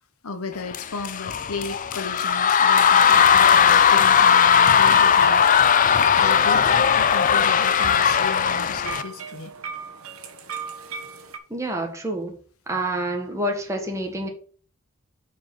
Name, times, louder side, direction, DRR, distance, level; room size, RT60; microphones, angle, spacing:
voice 1, 0.2-5.5 6.2-9.5, left 4 dB, 80° left, 1.0 m, -34 dB
sound 1, 0.7-9.0, left 7 dB, 35° left, 0.4 m, -17 dB
sound 2, 4.7-11.4, right 6 dB, 75° right, 1.2 m, -38 dB
voice 2, 11.5-12.3 12.7-14.3, right 1 dB, 15° right, 1.6 m, -27 dB
7.1 x 4.9 x 5.4 m
head